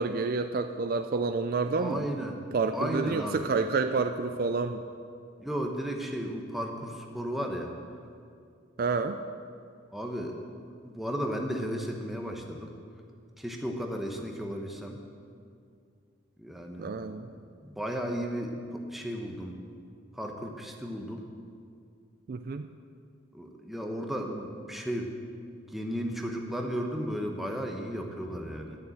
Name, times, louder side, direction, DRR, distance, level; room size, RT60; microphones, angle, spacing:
voice 1, 0.0-2.1 2.5-4.8 8.8-9.2 16.8-17.3 22.3-22.7, right 4 dB, 45° right, 8 dB, 0.4 m, -29 dB
voice 2, 1.8-2.4 2.7-3.4 5.4-7.7 9.9-10.3 10.8-12.7 13.4-15.0 16.4-16.9 17.6-19.6 20.1-21.2 23.3-25.1 25.7-28.8, equal, ahead, 1 dB, 0.9 m, -34 dB
11.5 x 7.0 x 7.8 m, 2.3 s
head